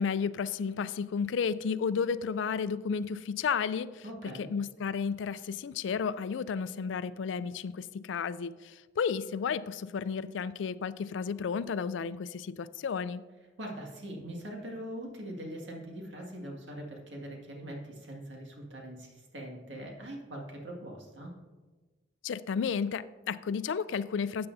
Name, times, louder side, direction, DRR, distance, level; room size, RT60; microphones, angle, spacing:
voice 1, 0.0-4.0 4.4-13.2 22.2-24.5, left 6 dB, 80° left, 16 dB, 0.4 m, -32 dB
voice 2, 4.0-4.5 13.6-21.4, right 1 dB, 75° right, 0 dB, 2.0 m, -42 dB
12.5 x 8.6 x 2.7 m, 1.3 s
head